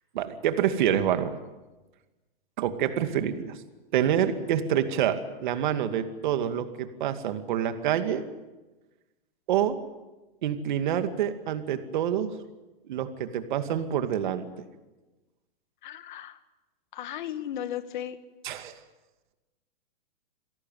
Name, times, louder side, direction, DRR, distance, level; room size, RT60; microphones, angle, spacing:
voice 1, 0.1-1.4 2.6-3.6 3.9-8.3 9.5-9.8 10.4-12.3 12.9-14.7 18.4-18.7, right 9 dB, 55° right, 9 dB, 2.3 m, -27 dB
voice 2, 15.8-16.4 16.9-18.2, left 11 dB, 55° left, 12 dB, 2.0 m, -35 dB
27.5 x 18.0 x 9.2 m, 1.1 s
hypercardioid pair, 155°, 29 cm